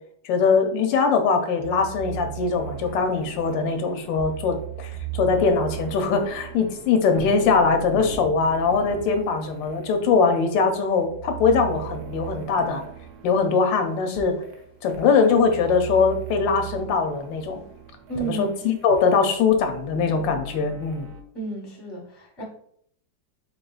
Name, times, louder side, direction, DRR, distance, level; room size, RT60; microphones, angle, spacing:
voice 1, 0.2-12.8 13.2-14.4 14.8-17.6 18.2-21.1, left 5 dB, 80° left, 6 dB, 1.3 m, -22 dB
sound 1, 1.6-21.2, right 6 dB, 70° right, 0.9 m, -38 dB
voice 2, 18.1-18.5 21.3-22.4, right 3 dB, 20° left, -2 dB, 0.6 m, -32 dB
3.7 x 3.6 x 2.3 m, 0.65 s
omnidirectional pair, 2.0 m